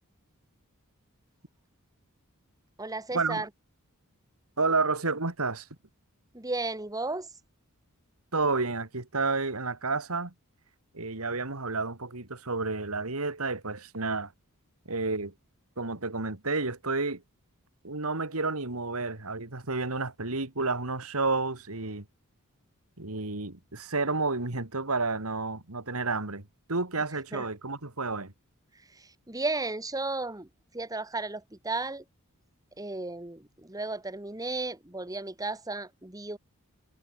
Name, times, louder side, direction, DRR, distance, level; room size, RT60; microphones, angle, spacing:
voice 1, 2.8-3.5 6.3-7.3 27.3-27.5 28.9-30.5 30.7-32.0 32.8-36.4, right 2 dB, 15° right, 1.9 m, -34 dB
voice 2, 4.6-5.7 8.3-10.3 10.9-14.3 14.9-15.3 15.8-17.2 17.8-22.1 23.0-26.4 26.7-28.3, right 3 dB, 75° right, 2.7 m, -30 dB
head